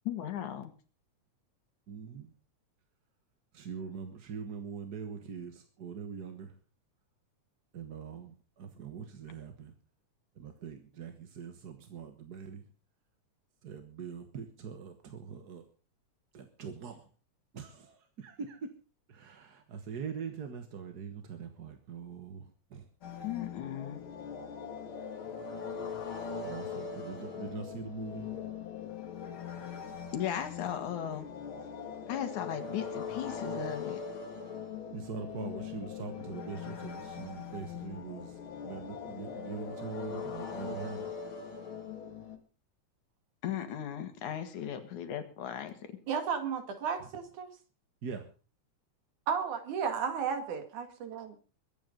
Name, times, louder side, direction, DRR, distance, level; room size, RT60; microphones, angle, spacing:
voice 1, 0.1-0.7 23.2-24.0 30.1-31.3 32.1-34.0 43.4-46.0, left 10 dB, 85° left, 8 dB, 3.2 m, -36 dB
voice 2, 1.9-2.3 3.5-6.6 7.7-9.8 10.3-12.7 13.6-15.6 16.3-17.1 17.5-18.7 19.1-22.9 26.4-28.4 34.9-41.1 44.5-44.6 47.0-47.1 48.0-48.3, right 6 dB, 45° right, 7 dB, 1.4 m, -43 dB
sound 1, 23.0-42.4, left 6 dB, 45° left, 2.5 m, -41 dB
voice 3, 46.1-47.5 49.3-51.3, right 6 dB, 85° right, 7 dB, 3.6 m, -33 dB
22.0 x 9.2 x 5.3 m, 0.37 s
omnidirectional pair, 3.4 m